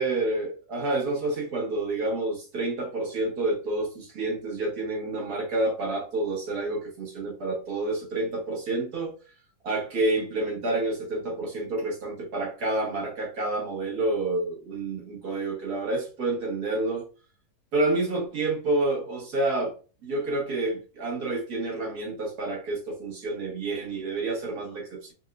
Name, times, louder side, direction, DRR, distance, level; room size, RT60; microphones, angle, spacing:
voice 1, 0.0-9.1 9.6-17.1 17.7-19.7 20.0-25.1, right 2 dB, 80° right, 2.0 m, -29 dB
5.3 x 2.4 x 2.4 m
omnidirectional pair, 1.6 m